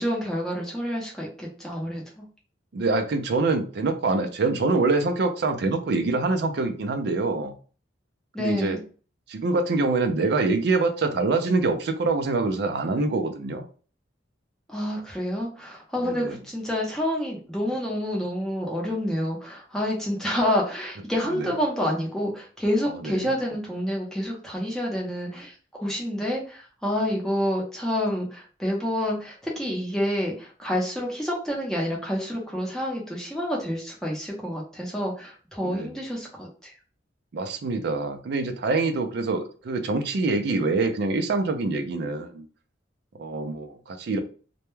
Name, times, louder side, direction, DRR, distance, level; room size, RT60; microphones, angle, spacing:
voice 1, 0.0-2.3 8.3-8.8 14.7-36.7, equal, 5° left, 0.7 m, -28 dB
voice 2, 2.7-7.5 8.4-8.8 9.3-13.7 16.0-16.4 21.4-21.5 23.0-23.3 35.6-35.9 37.3-42.4 43.2-44.2, right 3 dB, 60° right, 0.4 m, -25 dB
2.2 x 2.1 x 3.0 m
head